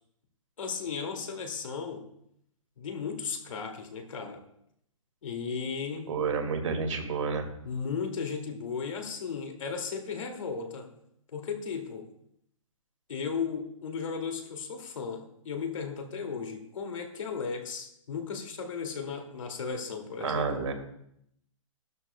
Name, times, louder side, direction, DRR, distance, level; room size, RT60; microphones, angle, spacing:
voice 1, 0.6-2.0 2.8-4.4 5.2-6.1 7.6-10.9 11.3-12.1 13.1-20.5, left 5 dB, 65° left, 3 dB, 2.3 m, -35 dB
voice 2, 6.1-7.5 20.2-20.7, right 5 dB, 60° right, 5 dB, 2.1 m, -30 dB
15.5 x 12.5 x 2.2 m, 0.73 s
hypercardioid pair, 180°, 18 cm